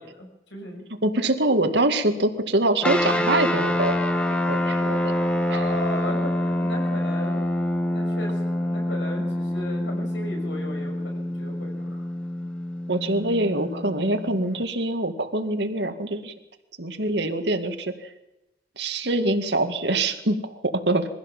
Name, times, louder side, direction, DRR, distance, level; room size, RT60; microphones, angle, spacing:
voice 1, 0.0-0.8 5.5-7.5 7.9-12.0 12.4-12.5, left 1 dB, 85° left, 2 dB, 6.4 m, -36 dB
voice 2, 1.0-4.2 4.5-5.0 5.5-5.6 12.9-16.3 16.8-18.1 18.8-21.1, right 2 dB, 70° right, 7 dB, 2.1 m, -24 dB
sound 1, 2.8-14.6, left 1 dB, 5° left, 1.4 m, -26 dB
23.0 x 15.5 x 7.4 m, 0.93 s
head